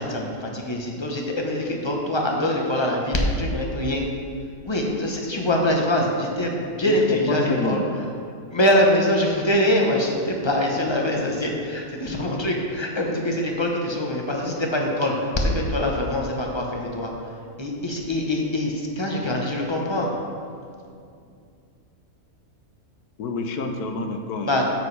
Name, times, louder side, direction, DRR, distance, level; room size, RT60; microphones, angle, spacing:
voice 1, 0.0-4.1 4.6-7.9 8.5-20.1 24.4-24.7, left 1 dB, 25° left, 0 dB, 0.8 m, -24 dB
voice 2, 6.9-7.8 23.2-24.6, left 2 dB, 80° left, 5 dB, 1.3 m, -28 dB
9.3 x 7.8 x 3.3 m, 2.3 s
omnidirectional pair, 1.6 m